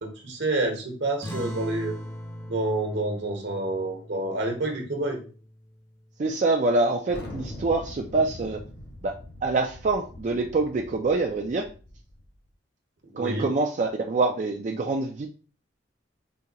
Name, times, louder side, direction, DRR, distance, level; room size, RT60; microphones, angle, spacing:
voice 1, 0.0-1.9 2.5-5.2 13.1-13.5, right 2 dB, 70° right, 3 dB, 1.2 m, -28 dB
sound 1, 1.2-6.2, equal, 15° left, 0.7 m, -40 dB
voice 2, 6.2-8.6 9.0-9.1 9.4-11.7 13.2-15.3, right 3 dB, 40° right, 2 dB, 0.4 m, -25 dB
Thunder, 7.1-12.3, left 1 dB, 65° left, 1.4 m, -42 dB
5.0 x 2.8 x 2.8 m, 0.38 s
head